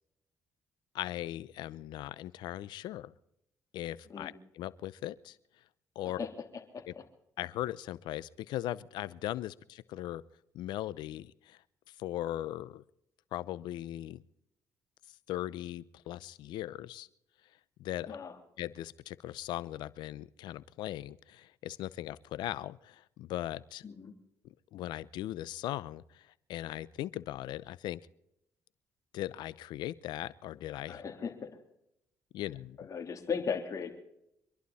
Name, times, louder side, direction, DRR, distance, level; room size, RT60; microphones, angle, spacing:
voice 1, 0.9-3.1 3.7-5.4 6.0-6.2 6.9-7.0 7.4-10.2 10.5-11.6 12.0-12.8 13.3-14.2 15.3-17.1 17.8-18.2 18.6-23.8 24.7-28.0 29.1-31.0 32.3-32.8, left 14 dB, 80° left, 19 dB, 0.7 m, -39 dB
voice 2, 18.1-18.4 23.8-24.1 30.9-31.5 32.8-33.9, left 6 dB, 45° left, 3 dB, 3.4 m, -37 dB
25.5 x 11.5 x 4.2 m, 0.80 s
cardioid pair, 80°, 7 cm